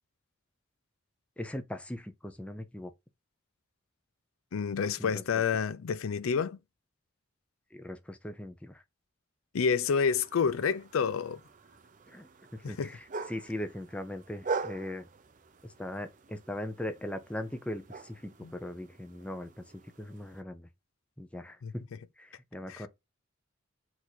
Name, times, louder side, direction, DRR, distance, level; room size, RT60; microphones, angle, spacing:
voice 1, 1.4-2.9 5.0-5.2 7.7-8.8 12.1-15.1 15.6-19.6 20.0-20.7 21.2-21.9 22.2-22.9, left 1 dB, 5° left, 0.6 m, -40 dB
voice 2, 4.5-6.6 9.5-11.4 12.6-12.9 18.4-18.5 21.6-21.7 22.7-22.9, left 6 dB, 85° left, 0.4 m, -29 dB
sound 1, 9.9-20.4, right 4 dB, 40° right, 0.5 m, -43 dB
4.6 x 2.7 x 4.0 m
head